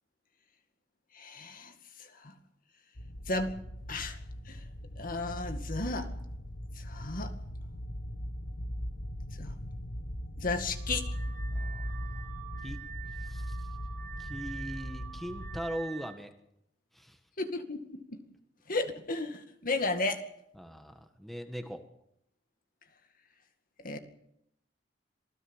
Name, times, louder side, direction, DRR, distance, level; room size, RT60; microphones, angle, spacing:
voice 1, 1.1-1.7 2.0-2.3 3.3-3.5 3.9-4.2 4.5-4.6 5.0-6.1 6.8-7.3 9.4-9.5 10.4-11.1 17.4-18.2 18.7-20.2 23.8-24.0, left 2 dB, 50° left, 7 dB, 2.2 m, -34 dB
sound 1, 3.0-15.6, equal, 70° left, 1.8 m, -39 dB
Car / Alarm, 10.7-16.2, right 8 dB, 60° right, 2.7 m, -46 dB
voice 2, 11.5-11.8 12.6-12.8 13.2-13.7 14.2-16.3 16.9-17.2 20.6-21.8, equal, ahead, 6 dB, 1.6 m, -40 dB
26.5 x 16.5 x 7.3 m, 0.78 s
head